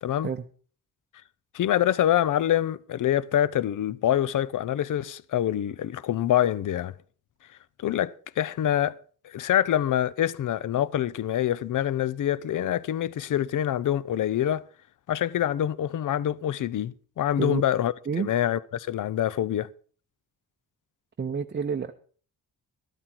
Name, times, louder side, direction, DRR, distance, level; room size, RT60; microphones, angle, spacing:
voice 1, 1.5-6.9 7.8-9.0 9.2-14.6 15.1-19.7, left 11 dB, 65° left, 0.6 m, -25 dB
voice 2, 21.2-21.9, right 6 dB, 30° right, 0.6 m, -29 dB
13.0 x 12.5 x 4.6 m
wide cardioid pair, 140°, 34 cm